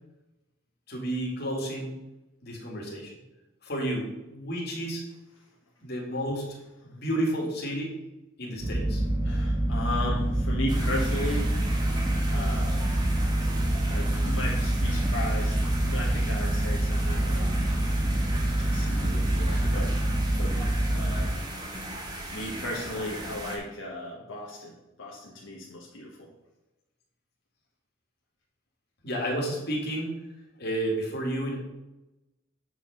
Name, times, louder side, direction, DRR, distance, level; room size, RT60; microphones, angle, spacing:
voice 1, 0.9-1.9 2.4-3.1 3.6-5.0 5.8-6.6 6.8-7.9 8.4-9.0 19.5-19.8 29.0-30.2 30.6-31.6, right 1 dB, 50° left, -1 dB, 2.2 m, -31 dB
sound 1, 8.6-21.2, right 1 dB, 90° right, 2.8 m, -26 dB
voice 2, 9.2-11.5 12.0-13.0 13.9-17.7 18.6-19.9 20.4-21.4 22.3-24.7 25.0-26.3, left 1 dB, 75° left, -3 dB, 1.4 m, -36 dB
sound 2, 10.7-23.6, right 1 dB, 20° right, 1.3 m, -38 dB
7.7 x 4.9 x 5.4 m, 1.0 s
head